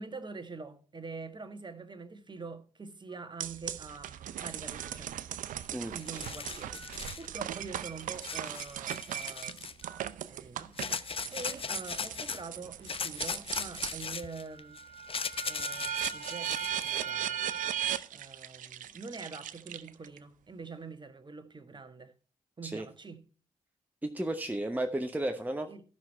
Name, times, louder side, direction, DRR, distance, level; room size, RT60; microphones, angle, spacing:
voice 1, 0.0-5.1 5.9-9.6 10.3-14.8 15.4-17.4 18.1-22.1 22.6-23.2 25.7-25.8, right 4 dB, 30° right, 1.5 m, -45 dB
Telephone, 3.1-3.3 4.0-4.1 4.8-5.0 5.5-5.7 6.1-6.3 6.7-6.9 7.3-7.5 7.8-8.0 8.3-8.5 8.8-9.0 9.3-9.5 9.8-10.0, right 7 dB, 80° right, 1.2 m, -55 dB
sound 1, 3.4-14.1 14.5-20.2, right 10 dB, 65° right, 0.6 m, -38 dB
sound 2, 5.6-5.7 6.0-7.3 8.2-9.9 10.8-12.4 12.9-17.0, left 5 dB, 40° left, 0.7 m, -38 dB
voice 2, 24.0-25.7, right 1 dB, 10° right, 1.0 m, -33 dB
12.5 x 6.0 x 4.4 m
hypercardioid pair, 40°, 14 cm